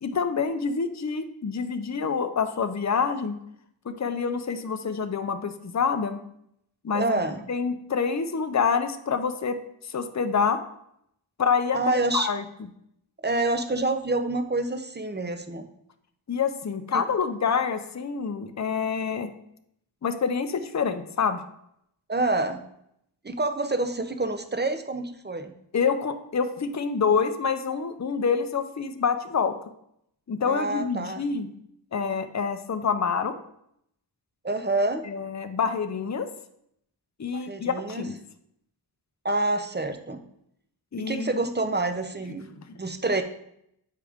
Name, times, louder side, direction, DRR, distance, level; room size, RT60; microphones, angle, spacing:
voice 1, 0.0-3.4 3.8-6.2 6.8-7.2 7.5-9.6 9.8-10.6 11.4-12.4 16.3-19.3 20.0-21.4 25.7-29.6 30.3-31.5 31.9-33.4 35.0-36.3 37.2-38.2 40.9-41.4 42.7-42.8, left 6 dB, 40° left, 8 dB, 0.6 m, -27 dB
voice 2, 6.9-7.4 11.7-12.3 13.2-15.6 16.9-17.0 22.1-22.6 23.2-25.5 30.4-31.2 34.4-35.0 37.3-38.1 39.2-40.2 41.0-43.2, right 2 dB, 25° right, 8 dB, 0.7 m, -27 dB
7.6 x 4.8 x 3.5 m, 0.75 s
wide cardioid pair, 40°, 45 cm